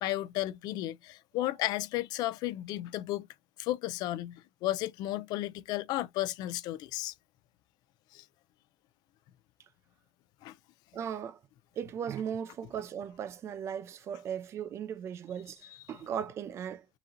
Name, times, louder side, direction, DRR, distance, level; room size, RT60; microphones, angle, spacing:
voice 1, 0.0-3.3 3.6-7.1 8.1-8.2 10.4-10.6, left 15 dB, 90° left, 0.4 m, -33 dB
voice 2, 10.9-11.4 11.8-16.9, right 8 dB, 45° right, 0.5 m, -37 dB
4.0 x 3.7 x 2.8 m
cardioid pair, 165°, 7 cm